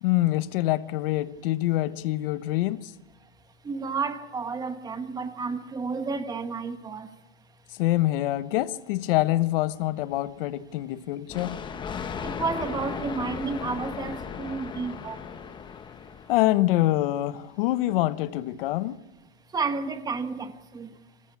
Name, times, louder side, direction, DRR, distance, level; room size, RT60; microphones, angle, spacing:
voice 1, 0.0-2.9 7.8-11.6 16.3-19.0, left 16 dB, 55° left, 1.1 m, -25 dB
voice 2, 3.6-7.1 12.2-15.2 19.5-20.9, right 4 dB, 10° right, 1.2 m, -31 dB
Thunder, 11.3-16.6, left 6 dB, 15° left, 1.1 m, -36 dB
27.0 x 14.5 x 8.7 m
supercardioid pair, 155°, 33 cm